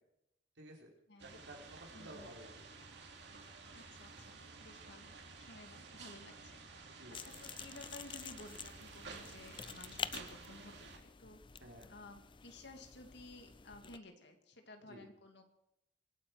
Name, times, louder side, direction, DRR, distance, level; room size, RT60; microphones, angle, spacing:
voice 1, 0.6-0.9 1.2-2.6 4.1-4.3 6.9-7.2 11.6-11.9 14.9-15.1, right 1 dB, 85° right, -1 dB, 4.8 m, -53 dB
voice 2, 1.1-1.4 1.9-2.3 3.7-11.4 11.9-15.4, left 2 dB, 65° left, 5 dB, 2.5 m, -55 dB
sound 1, 1.2-11.0, right 4 dB, 65° right, 2.9 m, -53 dB
sound 2, 7.1-14.0, left 7 dB, 25° left, 0.5 m, -48 dB
24.0 x 8.9 x 6.1 m, 0.86 s
head